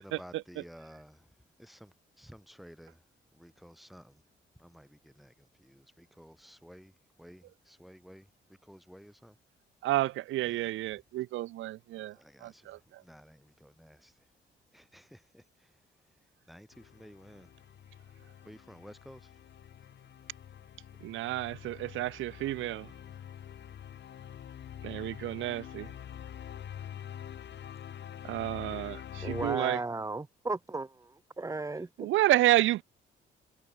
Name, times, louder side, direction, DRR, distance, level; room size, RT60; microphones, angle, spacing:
voice 1, 0.0-4.3 4.6-9.4 10.4-10.7 12.1-14.3 14.7-16.2 16.5-17.5 18.4-19.4 22.8-23.2 25.8-25.9, equal, ahead, 3.5 m, -54 dB
voice 2, 9.8-13.0 21.0-22.9 24.8-25.9 28.2-29.8 32.0-32.8, right 16 dB, 85° right, 0.7 m, -30 dB
sound 1, 16.7-29.6, left 9 dB, 60° left, 2.5 m, -46 dB
voice 3, 29.2-32.1, right 3 dB, 15° right, 1.2 m, -35 dB
cardioid pair, 90°, 20 cm